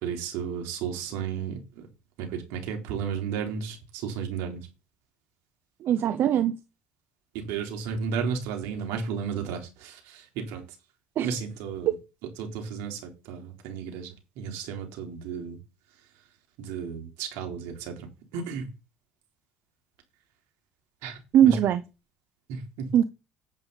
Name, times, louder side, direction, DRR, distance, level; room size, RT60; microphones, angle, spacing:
voice 1, 0.0-1.9 2.2-4.6 7.3-10.6 11.2-11.9 12.4-13.0 13.3-15.6 16.6-18.1 18.3-18.7 21.0-21.5 22.5-22.9, right 6 dB, 80° right, 3.8 m, -33 dB
voice 2, 5.8-6.6 11.2-11.4 11.8-11.9 21.3-21.8 22.9-23.0, right 10 dB, 55° right, 0.8 m, -21 dB
10.5 x 8.8 x 4.2 m
supercardioid pair, 95°, 4 cm